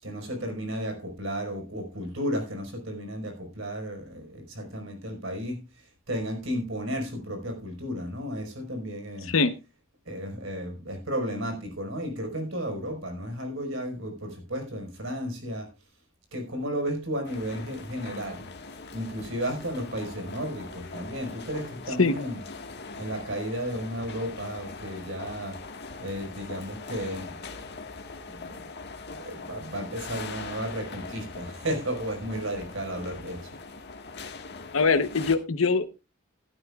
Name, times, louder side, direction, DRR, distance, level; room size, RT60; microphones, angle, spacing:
voice 1, 0.0-5.6 6.1-9.3 10.1-15.7 16.3-18.5 18.9-22.4 23.0-25.6 26.0-27.4 28.3-28.6 29.1-33.5, equal, 65° right, 3 dB, 4.9 m, -33 dB
voice 2, 9.2-9.5 22.0-22.2 34.7-35.9, left 4 dB, 75° left, 10 dB, 1.0 m, -22 dB
sound 1, 17.2-35.4, left 4 dB, 55° left, 1.6 m, -41 dB
16.0 x 12.0 x 2.4 m, 0.28 s
head